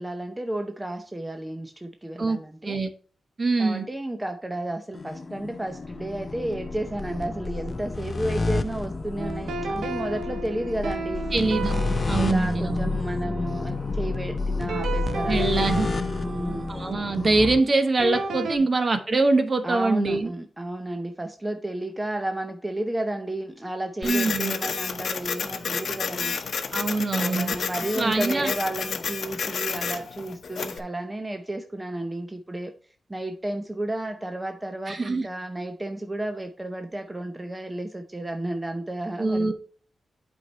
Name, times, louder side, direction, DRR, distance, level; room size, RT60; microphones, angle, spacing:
voice 1, 0.0-2.8 3.6-11.2 12.2-15.9 16.2-16.7 19.6-26.4 27.1-32.7 33.1-39.5, right 1 dB, 15° right, 6 dB, 0.6 m, -32 dB
voice 2, 3.4-3.8 11.3-11.7 12.1-13.0 15.3-15.9 16.7-20.3 24.0-24.6 26.7-27.5 28.0-28.5 34.9-35.3 39.2-39.5, right 3 dB, 40° right, 8 dB, 1.0 m, -23 dB
sound 1, 4.9-17.6, left 3 dB, 35° left, 0.5 m, -30 dB
sound 2, 9.2-14.0 14.7-18.6, right 2 dB, 85° right, 1.1 m, -34 dB
Printer, 24.0-30.8, left 6 dB, 65° left, 0.8 m, -30 dB
8.2 x 4.7 x 4.2 m, 0.42 s
wide cardioid pair, 100°, 0 cm